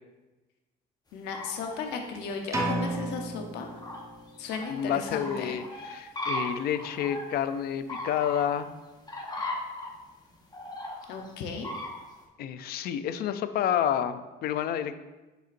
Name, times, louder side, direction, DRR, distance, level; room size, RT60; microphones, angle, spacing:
voice 1, 1.1-3.7 4.4-5.6 11.1-11.7, left 5 dB, 90° left, 3 dB, 0.8 m, -35 dB
sound 1, 1.2-1.8 2.1-7.4 7.9-8.6 9.1-10.0 10.5-11.3 11.6-12.2, left 1 dB, 25° left, 1.1 m, -37 dB
sound 2, 2.5-4.4, right 1 dB, 20° right, 1.0 m, -32 dB
voice 2, 4.7-8.7 12.4-15.0, left 9 dB, 65° left, 12 dB, 0.4 m, -29 dB
7.3 x 5.6 x 2.6 m, 1.1 s
cardioid pair, 110°, 17 cm